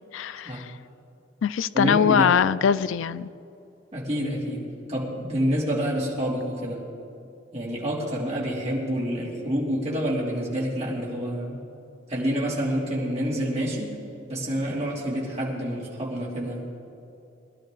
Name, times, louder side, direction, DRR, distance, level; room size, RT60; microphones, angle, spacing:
voice 1, 0.1-0.7 1.4-3.3, left 7 dB, 80° left, 15 dB, 0.3 m, -22 dB
voice 2, 1.7-2.3 3.9-6.8 7.5-11.6 12.1-13.9 14.3-16.7, equal, 35° right, -5 dB, 3.0 m, -28 dB
21.5 x 12.0 x 3.9 m, 2.7 s
head